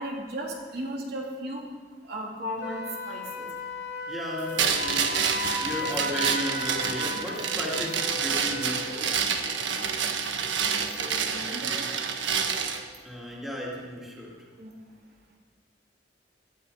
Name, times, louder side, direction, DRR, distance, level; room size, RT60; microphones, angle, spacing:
voice 1, 0.0-1.6 2.0-3.5 10.6-11.9 14.6-14.7, equal, 60° right, -2 dB, 3.5 m, -36 dB
Wind instrument woodwind instrument, 2.6-8.9, left 2 dB, 65° left, 2.3 m, -35 dB
voice 2, 4.1-9.2 13.0-14.4, equal, ahead, -4 dB, 2.5 m, -35 dB
sound 1, 4.6-12.8, right 6 dB, 85° right, 1.3 m, -28 dB
18.0 x 12.5 x 5.5 m, 1.5 s
head